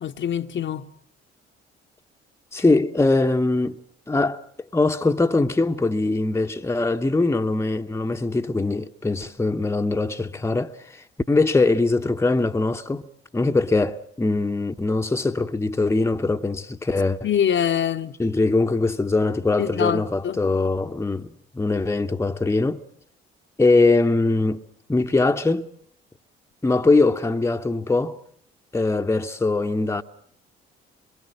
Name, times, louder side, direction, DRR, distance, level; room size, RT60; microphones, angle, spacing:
voice 1, 0.0-0.9 17.2-18.2 19.6-20.4, left 9 dB, 40° left, 0.9 m, -24 dB
voice 2, 2.5-4.4 4.7-13.0 13.3-17.2 18.2-22.8 23.6-24.6 24.9-25.7 26.6-28.2 28.7-30.0, left 3 dB, 10° left, 0.9 m, -22 dB
23.5 x 23.0 x 7.5 m
figure-of-eight pair, 50°, 30 cm